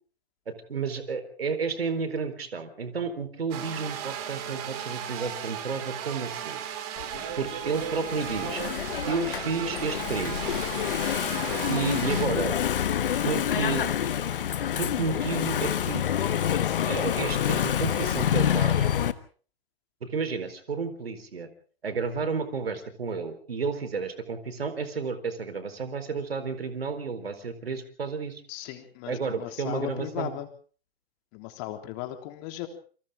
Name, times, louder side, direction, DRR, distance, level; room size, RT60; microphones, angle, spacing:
voice 1, 0.5-6.6 7.4-8.6 9.1-10.4 11.7-12.5 13.2-13.9 14.8-16.0 16.9-18.9 20.0-21.5 21.8-28.4 29.1-30.3, right 5 dB, 70° right, 10 dB, 4.3 m, -31 dB
sound 1, 3.5-12.3, right 9 dB, 40° right, 4.5 m, -36 dB
Engine / Mechanisms, 7.0-19.1, left 9 dB, 60° left, 1.4 m, -27 dB
voice 2, 28.5-30.5 31.3-32.7, left 14 dB, 35° left, 6 dB, 3.5 m, -37 dB
28.0 x 25.0 x 3.7 m, 0.44 s
figure-of-eight pair, 115°, 31 cm